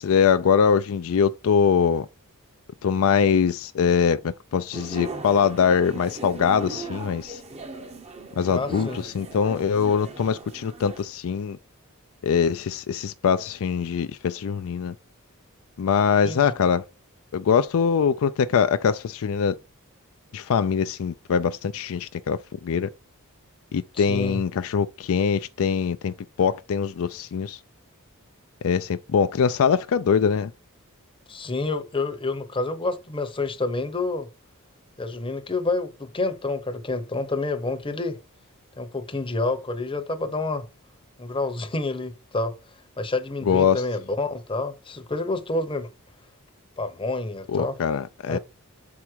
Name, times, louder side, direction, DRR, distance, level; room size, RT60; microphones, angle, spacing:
voice 1, 0.0-2.1 2.8-7.4 8.4-11.6 12.2-14.9 15.8-16.8 17.3-19.6 20.3-22.9 23.7-27.6 28.6-30.5 43.5-43.8 47.5-48.4, left 6 dB, 65° left, 0.4 m, -23 dB
sound 1, 4.7-11.0, right 2 dB, 30° right, 0.8 m, -38 dB
voice 2, 8.5-9.0 16.2-16.4 23.9-24.4 31.3-34.3 35.0-38.2 38.8-40.7 41.2-42.5 43.0-45.9 46.8-47.8 48.3-48.4, left 2 dB, 25° left, 0.8 m, -28 dB
7.0 x 4.8 x 4.4 m
head